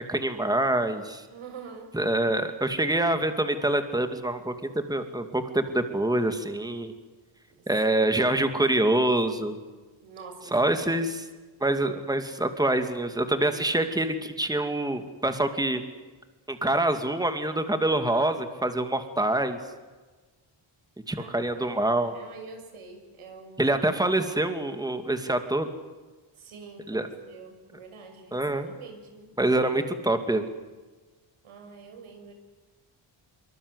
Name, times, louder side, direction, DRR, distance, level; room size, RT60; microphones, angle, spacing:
voice 1, 0.0-1.2 1.9-6.9 7.7-9.6 10.5-11.3 11.6-15.8 16.5-19.6 21.1-22.1 23.6-25.7 26.9-27.1 28.3-28.7 29.4-30.5, right 1 dB, 10° right, 7 dB, 2.4 m, -25 dB
voice 2, 1.3-2.0 7.5-8.2 10.0-10.8 21.1-23.8 26.3-29.3 31.4-32.3, right 4 dB, 80° right, 5 dB, 6.5 m, -46 dB
25.0 x 24.5 x 8.1 m, 1.3 s
cardioid pair, 100°, 49 cm